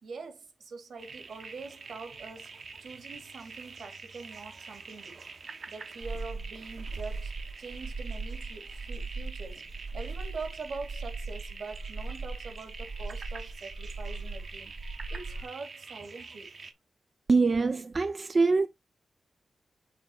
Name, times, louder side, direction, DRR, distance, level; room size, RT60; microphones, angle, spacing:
voice 1, 0.0-2.5 2.8-5.2 5.7-7.3 7.6-9.6 9.9-14.8 15.1-16.5, right 4 dB, 80° right, 2.3 m, -44 dB
sound 1, 1.0-16.7, right 4 dB, 55° right, 1.0 m, -46 dB
sound 2, 6.0-15.4, right 3 dB, 20° right, 0.9 m, -39 dB
voice 2, 17.3-18.7, right 4 dB, 35° right, 0.5 m, -24 dB
6.8 x 3.6 x 4.3 m
wide cardioid pair, 140°, 0 cm